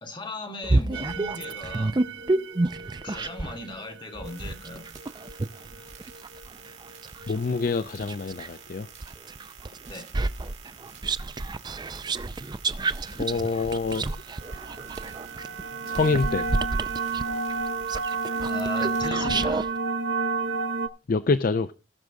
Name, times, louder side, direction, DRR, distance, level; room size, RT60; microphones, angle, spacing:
voice 1, 0.0-2.0 3.0-4.9 9.9-10.1 18.5-19.6, left 1 dB, 25° left, 2.3 m, -37 dB
sound 1, 0.6-3.6 4.2-8.5 9.0-19.7, right 2 dB, 25° right, 0.4 m, -30 dB
sound 2, 0.9-7.3 14.2-20.9, right 4 dB, 85° right, 0.9 m, -31 dB
sound 3, 4.2-19.0, right 8 dB, 40° right, 2.9 m, -49 dB
voice 2, 7.3-8.9 13.2-14.0 15.8-16.5 21.1-21.7, left 4 dB, 50° left, 0.5 m, -26 dB
19.0 x 6.4 x 3.5 m
head